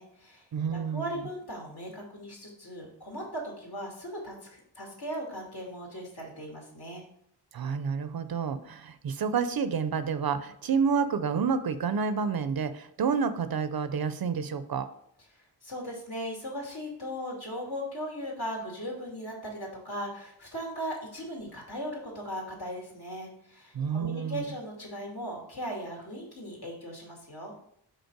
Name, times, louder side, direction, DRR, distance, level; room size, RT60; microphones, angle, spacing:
voice 1, 0.0-7.0 15.3-27.6, equal, 60° left, -2 dB, 2.3 m, -38 dB
voice 2, 0.5-1.2 7.5-14.9 23.7-24.5, right 6 dB, 55° right, 12 dB, 0.6 m, -29 dB
5.3 x 4.3 x 4.5 m, 0.68 s
wide cardioid pair, 90°, 43 cm